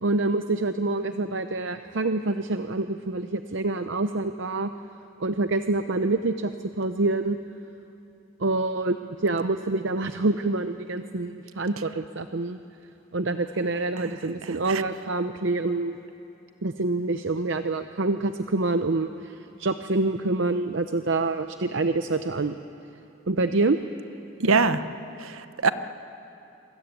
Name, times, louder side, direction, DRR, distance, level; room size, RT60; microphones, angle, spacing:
voice 1, 0.0-4.7 5.2-6.5 6.8-7.4 8.4-12.6 13.1-16.0 16.6-22.6 23.3-23.8, right 2 dB, 60° right, 9 dB, 0.7 m, -26 dB
voice 2, 24.4-24.8 25.2-25.7, right 4 dB, 85° right, 11 dB, 1.0 m, -22 dB
26.0 x 22.0 x 9.2 m, 2.9 s
head